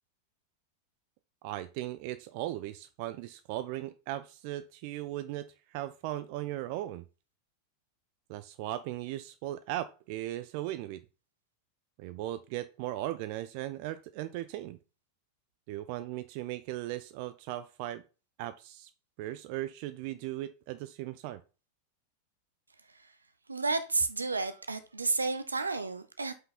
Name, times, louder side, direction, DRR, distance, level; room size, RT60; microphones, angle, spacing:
voice 1, 1.4-7.0 8.3-11.0 12.0-14.8 15.7-18.0 18.4-18.9 19.2-21.4, right 14 dB, 45° right, 0.4 m, -37 dB
voice 2, 23.5-26.3, right 3 dB, 80° right, 0.7 m, -31 dB
5.6 x 5.5 x 4.2 m
figure-of-eight pair, 90°, 0 cm